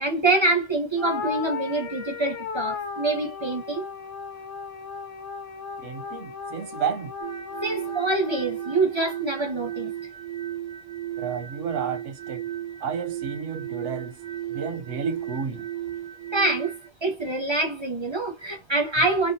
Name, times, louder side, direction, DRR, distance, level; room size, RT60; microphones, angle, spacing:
voice 1, 0.0-3.8 7.6-9.9 16.3-16.7 17.0-19.3, right 2 dB, 30° right, 0.6 m, -25 dB
sound 1, 1.0-9.6, left 6 dB, 90° left, 1.1 m, -36 dB
voice 2, 5.8-7.1 11.2-12.4 12.8-14.2 14.5-15.7, right 6 dB, 80° right, 1.1 m, -31 dB
sound 2, 7.2-16.9, right 11 dB, 60° right, 0.8 m, -35 dB
3.4 x 2.2 x 2.6 m
omnidirectional pair, 1.3 m